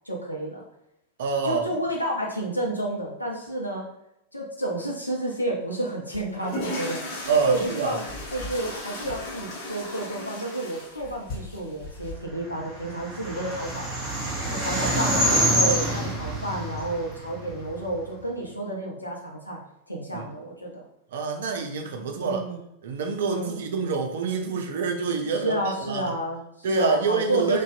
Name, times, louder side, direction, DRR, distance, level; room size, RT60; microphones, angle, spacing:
voice 1, 0.0-0.6 1.4-3.9 4.3-13.9 14.5-19.6 19.9-20.8 22.2-22.6 23.2-23.6 25.3-27.6, right 1 dB, 85° left, -2 dB, 0.6 m, -30 dB
voice 2, 1.2-1.6 7.3-7.9 14.7-14.8 20.1-20.3 21.1-22.4 22.8-25.6 25.9-26.0 26.6-27.6, right 4 dB, 60° right, 3 dB, 0.4 m, -26 dB
sound 1, 6.1-12.1, left 1 dB, 40° left, 0.9 m, -36 dB
sound 2, 12.5-17.9, right 1 dB, 20° right, 0.8 m, -26 dB
2.6 x 2.2 x 2.5 m, 0.79 s
figure-of-eight pair, 90°, 0 cm